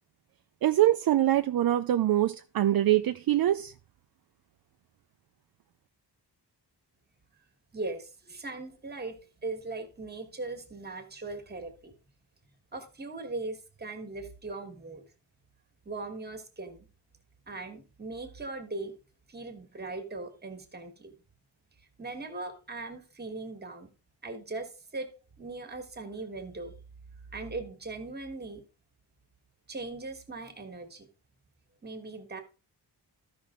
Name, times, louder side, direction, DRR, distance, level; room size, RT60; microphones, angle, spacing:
voice 1, 0.6-3.7, right 13 dB, 60° right, 0.5 m, -24 dB
voice 2, 7.7-9.2 9.4-11.9 12.7-15.0 15.8-16.9 17.5-18.9 19.3-21.1 22.0-23.9 24.2-25.1 25.4-26.7 27.3-28.6 29.7-31.1 31.8-32.4, right 3 dB, 25° right, 1.5 m, -39 dB
13.5 x 5.6 x 3.7 m
wide cardioid pair, 175°, 41 cm